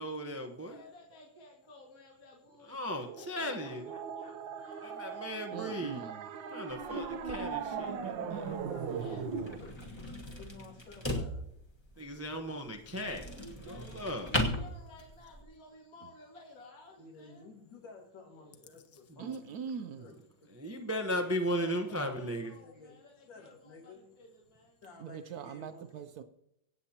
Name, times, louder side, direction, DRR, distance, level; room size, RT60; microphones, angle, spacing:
voice 1, 0.0-0.8 2.7-3.9 4.8-6.1 6.5-8.4 12.0-13.2 13.6-14.3 19.1-19.3 20.1-20.2 20.5-22.5, equal, 20° right, 0.4 m, -36 dB
voice 2, 0.7-5.2 8.3-9.7 13.2-13.9 14.2-17.5 18.3-18.8 21.5-24.8, left 1 dB, 50° left, 2.5 m, -55 dB
sound 1, 3.0-9.6, right 6 dB, 85° right, 1.6 m, -39 dB
voice 3, 5.5-6.2 19.2-20.1 25.0-26.2, right 7 dB, 70° right, 0.9 m, -41 dB
sound 2, 6.7-15.4, left 1 dB, 15° left, 1.3 m, -39 dB
voice 4, 8.3-9.8 10.3-11.4 17.0-19.6 20.0-20.5 22.5-23.0 23.3-24.0 24.8-26.1, left 3 dB, 80° left, 2.7 m, -53 dB
25.0 x 8.3 x 2.9 m
omnidirectional pair, 2.0 m